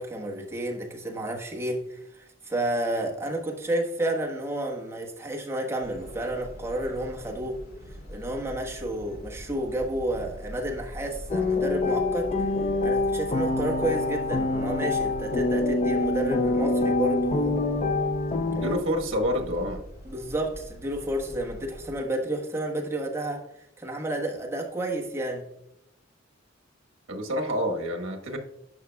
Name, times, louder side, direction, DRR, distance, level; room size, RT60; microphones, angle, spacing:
voice 1, 0.0-7.6 8.1-12.5 12.8-17.6 20.1-23.4 23.8-25.4, right 1 dB, 15° right, -1 dB, 1.3 m, -31 dB
sound 1, 5.8-22.0, equal, 50° left, 2.6 m, -43 dB
sound 2, 11.3-18.8, left 2 dB, 35° left, 0.5 m, -25 dB
voice 2, 18.5-19.8 27.1-28.4, equal, 75° right, 3 dB, 1.3 m, -28 dB
11.0 x 5.9 x 2.3 m, 0.82 s
head